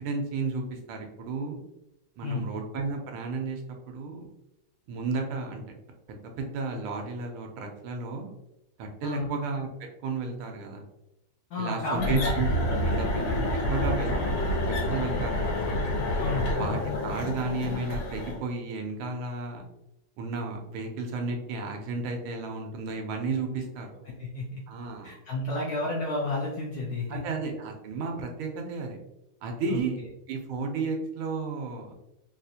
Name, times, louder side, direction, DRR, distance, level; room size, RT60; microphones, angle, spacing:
voice 1, 0.0-1.6 2.2-3.6 3.9-4.3 4.9-5.6 6.1-8.3 8.8-9.7 10.0-10.8 11.6-12.5 12.7-13.4 13.7-14.1 14.9-15.5 16.6-19.7 20.2-23.9 24.7-25.1 27.1-29.0 29.4-30.0 30.3-31.9, right 4 dB, 85° right, 3 dB, 1.5 m, -33 dB
voice 2, 11.5-12.3 12.7-13.0 13.3-13.5 16.2-16.6 24.2-24.6 25.0-27.2 29.7-29.8, left 2 dB, 70° left, -3 dB, 0.9 m, -32 dB
sound 1, 11.9-18.4, left 1 dB, 90° left, 2.0 m, -28 dB
4.1 x 2.4 x 2.6 m, 0.90 s
omnidirectional pair, 2.3 m